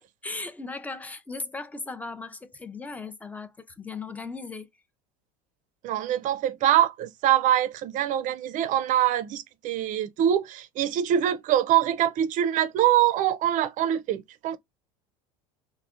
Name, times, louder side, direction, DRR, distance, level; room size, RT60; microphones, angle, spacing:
voice 1, 0.2-4.7, left 3 dB, 10° left, 0.5 m, -37 dB
voice 2, 5.8-14.6, right 11 dB, 45° right, 0.5 m, -24 dB
3.3 x 2.1 x 2.4 m
supercardioid pair, 95°, 18 cm